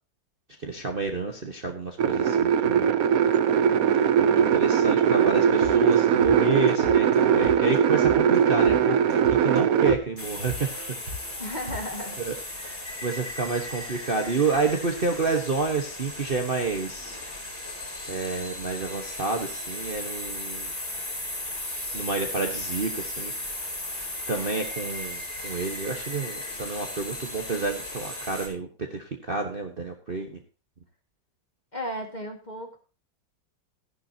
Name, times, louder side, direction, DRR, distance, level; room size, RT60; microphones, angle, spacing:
voice 1, 0.6-2.9 4.2-10.7 11.1-11.3 12.2-12.3 13.0-17.2 18.1-20.7 21.9-23.3 24.3-28.7 28.9-30.4, right 4 dB, 35° right, 3 dB, 1.2 m, -29 dB
sound 1, 2.0-9.9, right 8 dB, 60° right, 1.1 m, -20 dB
sound 2, 5.5-12.2, left 1 dB, 85° right, 4.8 m, -40 dB
sound 3, 10.2-28.5, left 1 dB, 45° left, 5.8 m, -36 dB
voice 2, 11.4-12.2 12.6-12.8 31.7-32.8, equal, 25° left, 4 dB, 1.8 m, -35 dB
14.0 x 11.0 x 2.8 m, 0.34 s
omnidirectional pair, 2.0 m